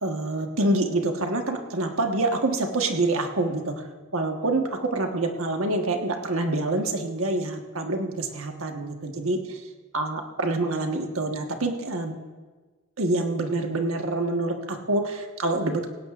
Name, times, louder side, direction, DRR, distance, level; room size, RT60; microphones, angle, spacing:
voice 1, 0.0-3.8 4.1-9.6 9.9-12.2 13.0-15.9, right 2 dB, 85° right, 3 dB, 1.4 m, -26 dB
17.5 x 17.0 x 2.5 m, 1.3 s
head